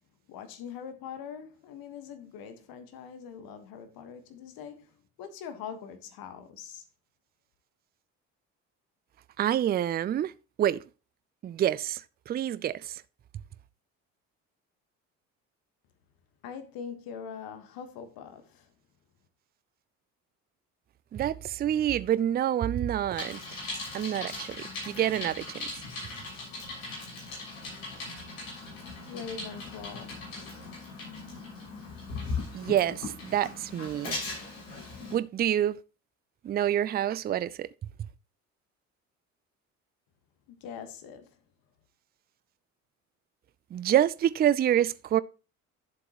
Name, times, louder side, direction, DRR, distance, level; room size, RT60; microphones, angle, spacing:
voice 1, 0.3-6.9 16.4-18.7 29.1-30.2 40.5-41.4, left 7 dB, 55° left, 1.5 m, -43 dB
voice 2, 9.4-10.3 10.6-10.8 11.4-13.0 21.1-23.4 23.9-24.6 24.9-25.7 32.5-34.2 35.1-35.8 36.4-37.7 43.7-45.2, right 11 dB, 25° right, 0.4 m, -27 dB
Bicycle, 23.1-35.1, left 3 dB, 75° left, 6.1 m, -39 dB
11.5 x 7.6 x 3.0 m
figure-of-eight pair, 55°, 41 cm